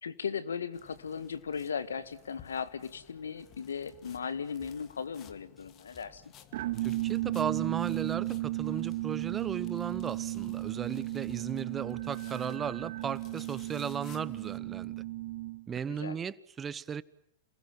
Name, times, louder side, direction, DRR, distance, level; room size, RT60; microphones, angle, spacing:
voice 1, 0.0-6.2 15.9-16.2, left 6 dB, 85° left, 1.6 m, -37 dB
sound 1, 0.7-14.6, left 10 dB, 40° left, 2.4 m, -58 dB
sound 2, 3.6-10.3 10.6-11.6 11.9-12.9, left 3 dB, 15° left, 6.4 m, -62 dB
sound 3, 6.5-15.8, right 18 dB, 60° right, 1.0 m, -35 dB
voice 2, 6.8-15.0 15.7-17.0, right 7 dB, 20° right, 1.0 m, -36 dB
28.0 x 20.5 x 9.1 m
hypercardioid pair, 105°, 0 cm